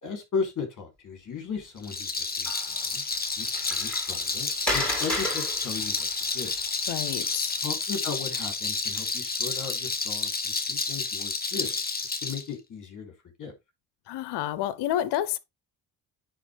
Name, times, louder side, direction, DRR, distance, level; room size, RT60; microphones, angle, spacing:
voice 1, 0.0-3.0 3.4-6.1 6.3-6.5 7.6-11.8 12.2-13.1 13.4-13.5, left 5 dB, 50° left, 3.4 m, -36 dB
Rattle, 1.8-12.4, left 4 dB, 20° left, 1.2 m, -30 dB
Water, 2.4-7.8, left 1 dB, ahead, 3.2 m, -35 dB
voice 2, 6.9-7.6 14.1-15.4, left 12 dB, 75° left, 0.7 m, -29 dB
9.8 x 3.6 x 3.3 m
cardioid pair, 85°, 41 cm